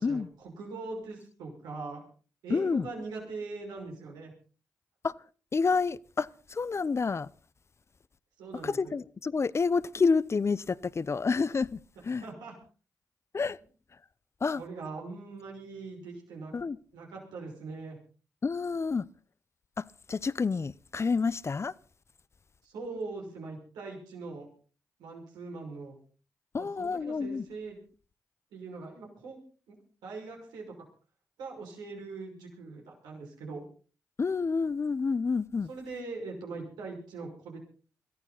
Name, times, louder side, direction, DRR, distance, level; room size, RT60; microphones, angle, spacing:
voice 1, 0.0-2.0 2.4-4.3 8.4-8.9 12.1-12.5 14.5-16.5 16.9-18.0 22.6-24.5 25.0-25.9 26.6-27.8 28.5-29.4 29.7-29.8 30.0-30.7 31.4-33.6 35.7-37.6, right 3 dB, 90° right, 5.8 m, -41 dB
voice 2, 2.5-2.9 5.0-5.1 5.5-7.3 8.6-12.2 13.3-13.6 14.4-14.6 16.5-16.8 18.4-19.1 19.8-21.7 26.5-27.4 34.2-35.7, left 4 dB, 40° left, 0.8 m, -29 dB
22.5 x 14.5 x 4.1 m
supercardioid pair, 45°, 7 cm